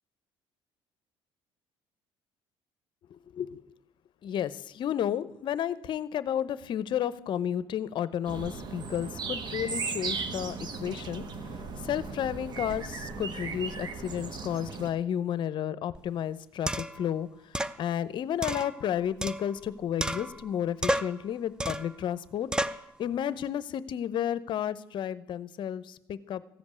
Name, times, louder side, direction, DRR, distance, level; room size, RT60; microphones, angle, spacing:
voice 1, 3.1-3.6 4.2-11.2 11.8-17.3 17.5-22.5 23.0-26.6, left 10 dB, 50° left, 16 dB, 0.7 m, -32 dB
sound 1, 8.2-14.9, right 4 dB, 45° right, 1.3 m, -37 dB
sound 2, 15.9-16.0 16.7-17.0 17.5-17.8 18.4-19.7 20.0-20.5 20.8-21.2 21.6-22.0 22.5-22.9, right 1 dB, 10° right, 0.4 m, -31 dB
15.0 x 5.2 x 8.4 m, 0.80 s
cardioid pair, 110°, 10 cm